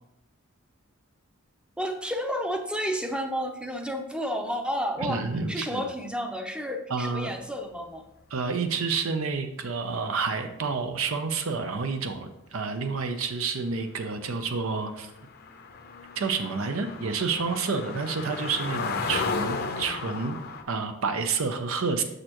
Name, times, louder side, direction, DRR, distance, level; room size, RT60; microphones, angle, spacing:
voice 1, 1.8-5.2 5.5-8.0, equal, 5° right, 5 dB, 0.6 m, -31 dB
voice 2, 5.0-5.9 6.9-7.3 8.3-15.1 16.2-20.4 20.7-22.0, right 4 dB, 75° right, 7 dB, 0.6 m, -29 dB
sound 1, 14.3-14.4 14.6-20.6, left 4 dB, 50° left, 0.7 m, -34 dB
6.5 x 6.4 x 3.0 m, 0.83 s
head